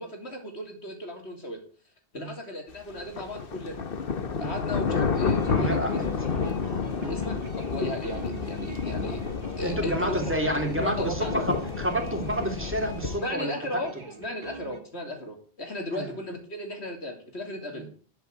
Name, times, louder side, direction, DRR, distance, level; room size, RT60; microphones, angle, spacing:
voice 1, 0.0-1.6 2.1-3.8 4.4-6.6 7.1-9.2 9.6-10.5 10.8-11.4 13.2-17.9, left 1 dB, 80° left, 3 dB, 3.3 m, -35 dB
sound 1, 2.9-13.2, left 5 dB, 55° left, 1.3 m, -30 dB
sound 2, 4.9-14.8, right 4 dB, 45° right, 1.5 m, -45 dB
voice 2, 5.5-6.5 7.0-7.1 9.6-13.8 15.9-16.1 17.7-17.8, right 1 dB, 10° right, 2 dB, 3.0 m, -30 dB
12.0 x 6.9 x 7.9 m, 0.42 s
omnidirectional pair, 1.1 m